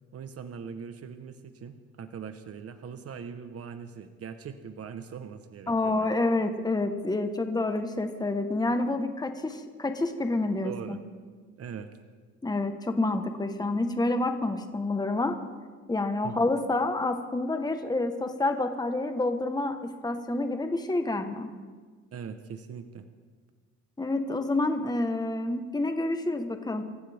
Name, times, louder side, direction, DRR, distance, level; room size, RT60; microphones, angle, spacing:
voice 1, 0.1-6.1 10.6-11.0 11.6-11.9 16.2-16.4 22.1-23.1, right 6 dB, 50° right, 8 dB, 1.2 m, -41 dB
voice 2, 5.7-11.0 12.4-15.4 15.9-21.5 24.0-26.8, left 2 dB, 15° left, 6 dB, 1.3 m, -28 dB
26.0 x 15.0 x 3.6 m, 1.5 s
cardioid pair, 90°, 30 cm